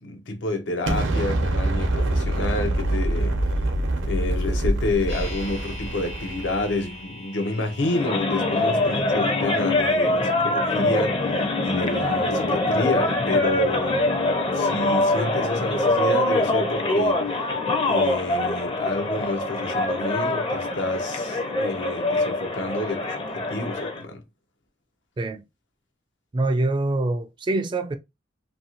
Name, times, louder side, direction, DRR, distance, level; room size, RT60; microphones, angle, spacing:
voice 1, 0.0-3.4 4.0-11.2 11.6-14.3 14.5-17.2 17.8-24.2, left 2 dB, 70° left, 0.6 m, -29 dB
Explosion, 0.9-6.9, right 1 dB, 90° right, 0.7 m, -25 dB
sound 1, 5.1-15.1 15.4-15.5, equal, 90° left, 1.2 m, -44 dB
sound 2, 7.8-24.0, left 2 dB, 30° left, 0.6 m, -24 dB
voice 2, 26.3-28.0, right 2 dB, 25° right, 0.3 m, -24 dB
2.7 x 2.6 x 2.8 m
head